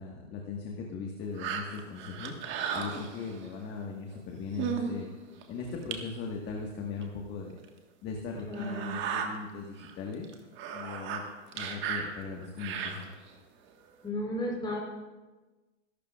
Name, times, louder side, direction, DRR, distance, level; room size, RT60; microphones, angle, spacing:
voice 1, 0.0-2.4 2.7-5.1 5.5-7.6 8.0-10.3 10.7-11.2 11.5-13.1, left 5 dB, 30° left, 0 dB, 1.5 m, -39 dB
sound 1, 1.4-3.5 4.1-4.2 4.5-5.0 5.4-5.5 5.9-6.0 7.0-7.1 7.6-7.7 8.5-9.3 9.8-9.9 10.2-13.3 13.9-14.0, right 7 dB, 30° right, 1.5 m, -35 dB
voice 2, 8.5-9.0 14.0-14.8, left 1 dB, 10° left, -1 dB, 3.9 m, -34 dB
22.0 x 12.0 x 2.4 m, 1.2 s
hypercardioid pair, 130°, 38 cm